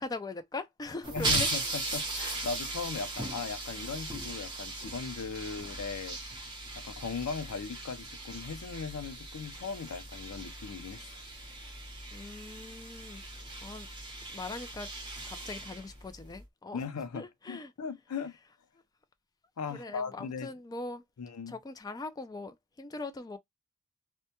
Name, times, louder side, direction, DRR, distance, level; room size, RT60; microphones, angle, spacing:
voice 1, 0.0-1.5 12.1-13.2 13.6-13.9 14.3-14.9 15.3-16.8 17.1-17.7 19.7-21.0 21.5-23.4, left 3 dB, 15° left, 0.3 m, -41 dB
sound 1, 1.0-16.4, right 2 dB, 20° right, 0.8 m, -38 dB
voice 2, 1.1-6.2 6.8-11.0 16.7-18.4 19.6-20.5 21.2-21.5, left 5 dB, 85° left, 0.5 m, -38 dB
2.2 x 2.2 x 2.8 m
head